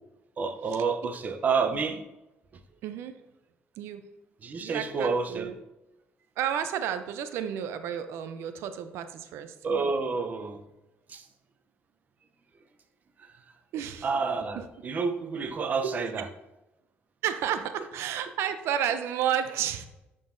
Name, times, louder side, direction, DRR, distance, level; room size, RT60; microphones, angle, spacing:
voice 1, 0.4-2.0 4.4-5.5 9.6-10.6 11.1-11.3 13.2-13.4 14.0-16.3, right 4 dB, 40° right, 8 dB, 0.6 m, -29 dB
voice 2, 2.8-3.1 3.8-4.0 4.6-5.6 6.4-9.5 13.7-14.1 17.2-19.9, right 9 dB, 85° right, 10 dB, 0.4 m, -31 dB
10.0 x 3.8 x 2.6 m, 0.96 s
cardioid pair, 115°, 4 cm